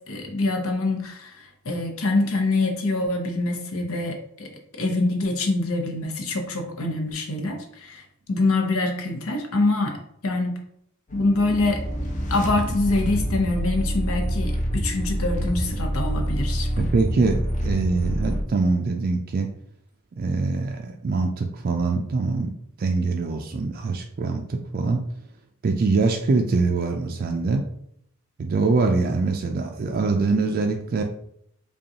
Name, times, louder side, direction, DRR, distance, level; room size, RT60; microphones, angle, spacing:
voice 1, 0.1-4.5 4.8-8.0 8.3-10.0 10.2-10.5 11.1-11.8 12.3-16.9, left 2 dB, 80° left, 3 dB, 0.8 m, -25 dB
sound 1, 11.1-18.4, equal, 35° left, 0.7 m, -27 dB
voice 2, 16.8-19.5 20.2-22.5 22.8-25.0 25.6-27.7 28.4-31.0, right 3 dB, 45° right, 2 dB, 0.4 m, -23 dB
5.1 x 2.3 x 2.8 m, 0.70 s
head